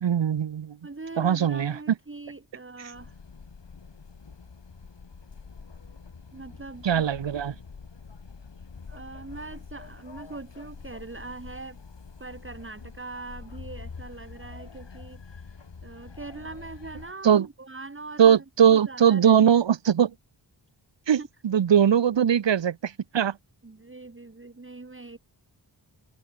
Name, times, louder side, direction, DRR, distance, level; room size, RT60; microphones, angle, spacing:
voice 1, 0.0-0.8 1.2-1.7 6.8-7.5 17.2-17.5 18.2-20.1 21.1-21.2 21.4-23.4, right 8 dB, 75° right, 0.9 m, -20 dB
voice 2, 0.8-3.2 6.3-7.1 8.9-11.8 12.2-19.6 21.1-21.3 23.6-25.2, right 3 dB, 25° right, 2.3 m, -42 dB
sound 1, 2.9-17.1, left 5 dB, 70° left, 6.3 m, -45 dB
wide cardioid pair, 95°, 45 cm